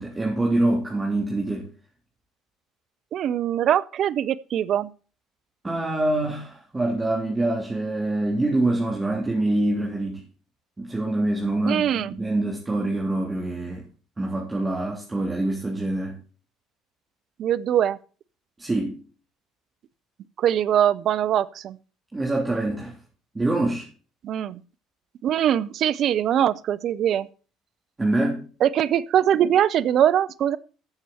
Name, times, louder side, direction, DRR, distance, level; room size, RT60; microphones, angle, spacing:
voice 1, 0.0-1.7 5.6-10.2 10.8-13.9 14.2-16.2 18.6-19.0 22.1-22.9 23.3-23.8 28.0-28.5, right 2 dB, 20° right, 3.3 m, -25 dB
voice 2, 3.1-4.9 11.6-12.1 17.4-18.0 20.4-21.8 24.2-24.6 25.2-27.3 28.6-30.6, right 10 dB, 55° right, 0.6 m, -22 dB
14.5 x 6.9 x 4.2 m
hypercardioid pair, 65°, 0 cm